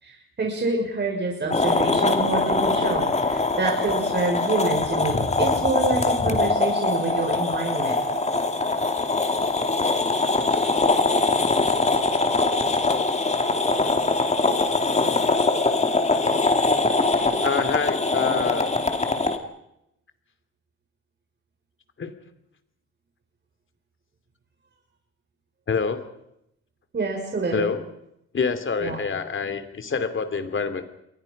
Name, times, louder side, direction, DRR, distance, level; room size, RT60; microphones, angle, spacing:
voice 1, 0.0-8.0 26.9-27.7 28.8-29.0, right 3 dB, 35° right, 0 dB, 6.1 m, -27 dB
sound 1, 1.5-19.4, left 3 dB, 20° left, 2.7 m, -22 dB
voice 2, 17.4-18.7 22.0-22.1 25.7-26.0 27.5-27.8 28.3-30.8, left 5 dB, 40° left, 9 dB, 3.0 m, -26 dB
28.5 x 22.5 x 5.5 m, 0.82 s
cardioid pair, 90°, 30 cm